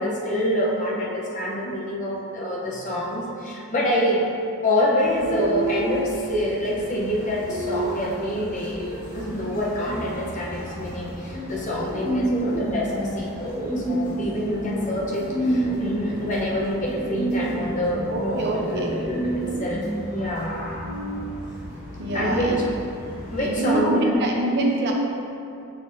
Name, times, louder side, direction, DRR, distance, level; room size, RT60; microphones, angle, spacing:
voice 1, 0.0-4.2 4.6-20.9 22.1-22.6 23.3-24.2, equal, 35° left, -4 dB, 0.8 m, -26 dB
sound 1, 5.0-23.5, right 1 dB, 10° right, 1.4 m, -30 dB
voice 2, 18.1-19.2 19.4-19.7 22.0-22.6 23.4-24.9, right 1 dB, 50° right, 0 dB, 0.7 m, -25 dB
6.4 x 6.0 x 2.7 m, 2.6 s
head